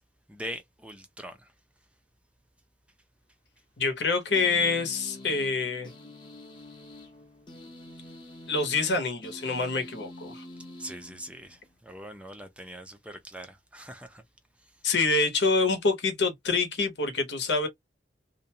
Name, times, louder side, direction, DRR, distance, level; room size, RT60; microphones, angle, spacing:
voice 1, 0.3-1.5 10.8-14.2, right 1 dB, 5° right, 0.4 m, -42 dB
voice 2, 3.8-5.9 8.5-10.4 14.8-17.7, left 3 dB, 70° left, 0.9 m, -26 dB
sound 1, 4.3-11.7, left 1 dB, 25° left, 0.8 m, -46 dB
2.5 x 2.1 x 2.8 m
head